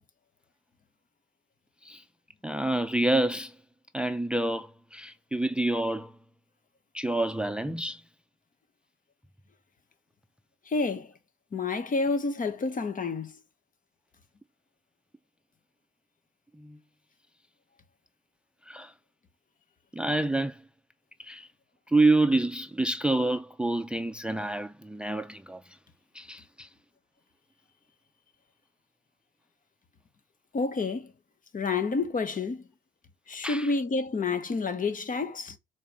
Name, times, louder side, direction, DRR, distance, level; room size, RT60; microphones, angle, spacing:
voice 1, 2.4-3.6 3.9-6.2 6.9-8.0 16.6-16.8 18.7-18.9 19.9-20.6 21.2-21.5 21.9-25.8 26.1-26.7 33.4-33.7, right 2 dB, 5° right, 0.6 m, -28 dB
voice 2, 10.7-11.1 11.5-13.3 30.5-31.1 31.5-32.6 33.3-35.6, left 4 dB, 45° left, 1.4 m, -29 dB
7.1 x 4.2 x 5.0 m
cardioid pair, 90°, 20 cm